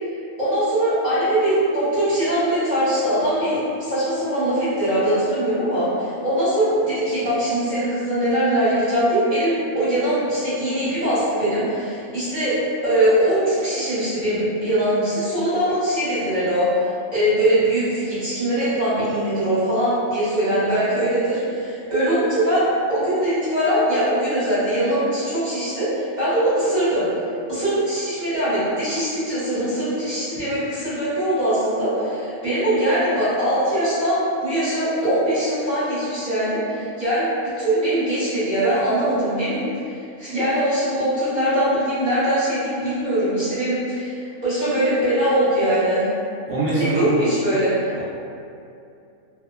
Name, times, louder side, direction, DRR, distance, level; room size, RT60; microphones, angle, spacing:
voice 1, 0.4-12.6 12.8-16.7 17.1-27.1 27.5-39.6 40.2-46.0 46.8-47.7, right 1 dB, 30° right, -13 dB, 1.2 m, -21 dB
voice 2, 46.5-47.1 47.9-48.0, right 3 dB, 70° right, -9 dB, 0.5 m, -22 dB
2.8 x 2.1 x 2.2 m, 2.6 s
omnidirectional pair, 1.5 m